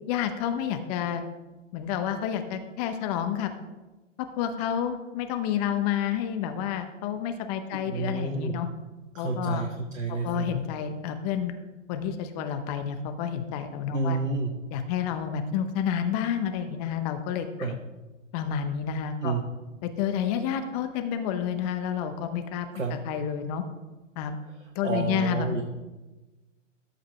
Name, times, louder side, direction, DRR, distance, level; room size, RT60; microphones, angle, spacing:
voice 1, 0.1-1.2 1.7-3.5 4.2-8.7 9.2-9.6 10.1-11.5 11.9-14.2 14.7-17.8 18.3-19.3 19.8-23.6 24.2-24.4 24.7-25.5, left 8 dB, 30° left, 8 dB, 0.8 m, -30 dB
voice 2, 7.7-8.5 9.1-10.5 13.9-14.5 17.6-17.8 19.2-19.4 22.7-22.9 24.8-25.6, right 4 dB, 90° right, 4 dB, 1.1 m, -29 dB
13.0 x 5.3 x 4.3 m, 1.1 s
hypercardioid pair, 120°, 38 cm